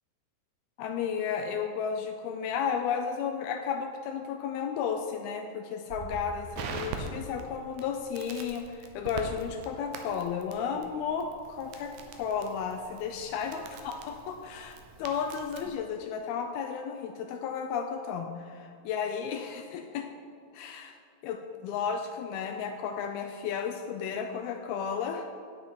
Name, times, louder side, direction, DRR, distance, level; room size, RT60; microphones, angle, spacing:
voice 1, 0.8-20.1 20.5-21.0 21.2-25.3, left 7 dB, 80° left, 5 dB, 2.2 m, -33 dB
Crackle, 5.9-15.8, right 4 dB, 75° right, 2.4 m, -43 dB
9.7 x 9.5 x 4.3 m, 2.3 s
omnidirectional pair, 4.8 m